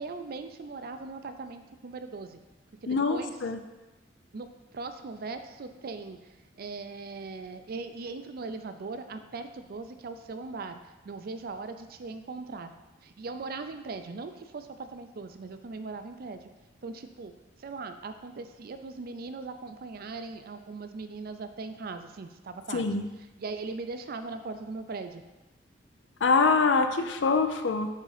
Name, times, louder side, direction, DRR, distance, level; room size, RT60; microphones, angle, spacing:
voice 1, 0.0-2.4 2.8-3.4 4.3-10.8 11.0-12.7 13.0-16.4 16.8-17.3 17.6-22.9 23.4-25.2, right 3 dB, 55° right, 9 dB, 0.4 m, -39 dB
voice 2, 2.9-3.6 22.7-23.0 26.2-27.9, left 4 dB, 80° left, 7 dB, 0.6 m, -24 dB
6.5 x 3.7 x 5.0 m, 1.1 s
head